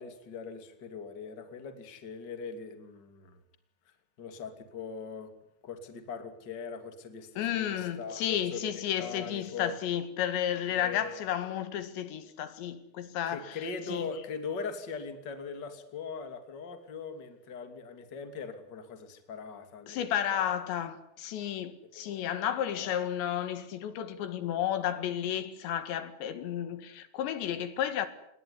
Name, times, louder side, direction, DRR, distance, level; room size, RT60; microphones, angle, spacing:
voice 1, 0.0-3.4 4.2-5.3 5.6-9.7 10.7-11.2 13.3-20.5 21.9-23.0, left 5 dB, 30° left, 2.7 m, -41 dB
voice 2, 7.4-13.6 13.9-14.1 19.9-28.1, left 10 dB, 80° left, 4.1 m, -32 dB
28.0 x 21.0 x 9.8 m
omnidirectional pair, 5.1 m